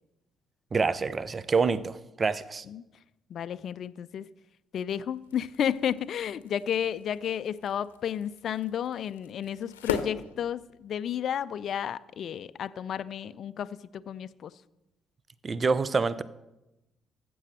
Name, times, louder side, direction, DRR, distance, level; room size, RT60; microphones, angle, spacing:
voice 1, 0.7-2.7 15.4-16.2, right 4 dB, 35° right, 0.6 m, -26 dB
voice 2, 3.3-4.3 4.7-14.5, left 9 dB, 55° left, 0.4 m, -32 dB
sound 1, 5.1-11.1, left 7 dB, 85° left, 0.7 m, -40 dB
14.5 x 6.2 x 7.4 m
hypercardioid pair, 45°, 0 cm